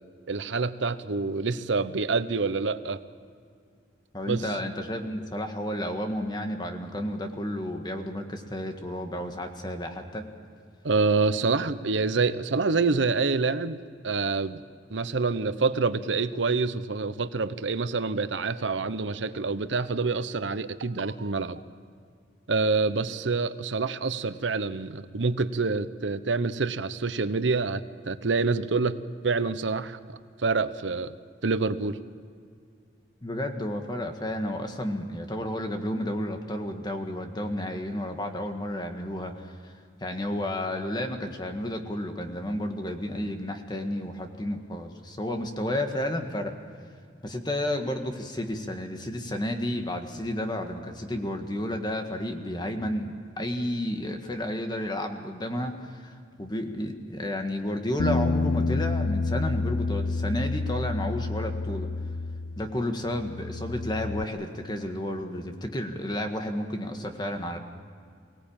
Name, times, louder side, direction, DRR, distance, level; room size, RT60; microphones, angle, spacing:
voice 1, 0.3-3.0 4.3-4.5 10.8-13.8 14.0-14.6 14.9-21.6 22.5-28.9 29.2-30.0 30.4-31.1 31.4-32.0, right 4 dB, 90° right, 13 dB, 0.8 m, -27 dB
voice 2, 4.1-10.3 33.2-39.7 40.0-46.5 47.2-61.9 62.6-67.6, left 1 dB, 25° left, 5 dB, 1.7 m, -32 dB
Bass guitar, 58.0-62.8 63.1-64.2, left 3 dB, 85° left, 0.6 m, -29 dB
24.0 x 17.5 x 8.8 m, 2.2 s
head